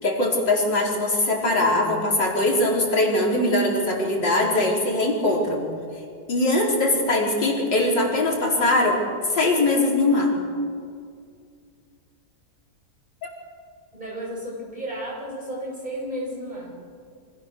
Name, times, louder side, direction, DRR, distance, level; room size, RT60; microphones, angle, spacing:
voice 1, 0.0-5.6 6.3-9.0 9.3-10.3 13.2-13.3, left 2 dB, 85° left, -1 dB, 4.9 m, -21 dB
voice 2, 13.9-16.7, right 1 dB, 25° right, -3 dB, 8.1 m, -33 dB
29.0 x 26.0 x 6.8 m, 2.2 s
omnidirectional pair, 1.9 m